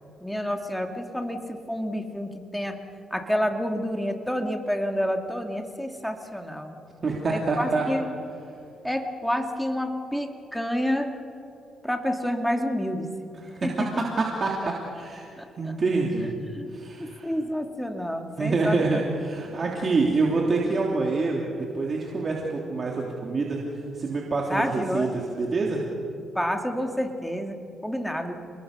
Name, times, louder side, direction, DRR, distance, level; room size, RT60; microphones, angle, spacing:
voice 1, 0.2-2.8 3.1-6.8 7.3-8.1 8.8-11.1 11.8-13.1 13.6-13.9 14.2-14.3 15.4-15.7 16.5-16.7 17.0-19.0 24.5-25.1 26.3-28.4, equal, 5° left, 4 dB, 2.3 m, -29 dB
voice 2, 7.0-7.8 13.4-15.2 15.6-16.3 16.7-17.3 18.4-23.6 23.9-25.8, right 3 dB, 40° right, -1 dB, 3.2 m, -26 dB
30.0 x 21.0 x 6.7 m, 2.6 s
cardioid pair, 90°, 0 cm